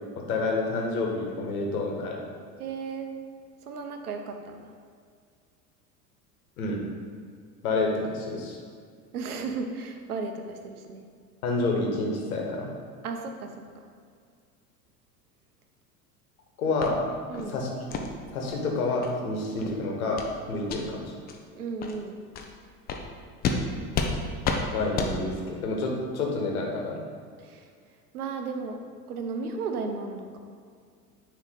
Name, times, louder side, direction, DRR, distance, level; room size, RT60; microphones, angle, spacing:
voice 1, 0.1-2.2 6.6-6.8 7.6-8.6 11.4-12.7 16.6-17.0 17.5-18.0 18.3-20.2 20.5-21.1 24.7-27.0, left 3 dB, 60° left, 0 dB, 1.4 m, -28 dB
voice 2, 2.6-3.1 3.7-4.7 9.1-11.0 13.0-13.9 17.3-17.6 21.5-22.2 27.4-27.7 28.1-28.8 29.1-30.4, right 4 dB, 65° right, 5 dB, 0.8 m, -34 dB
sound 1, 16.8-16.9 17.3-17.5 17.9-18.1 18.5-18.6 19.0-19.1 19.5-19.7 20.2-20.3 20.6-20.8 21.3-21.4 21.8-21.9 22.3-22.5 22.9-23.0 23.4-23.6 23.9-24.1 24.4-24.6 25.0-25.1, left 5 dB, 20° left, 0.5 m, -29 dB
9.5 x 3.2 x 4.0 m, 2.1 s
figure-of-eight pair, 80°, 48 cm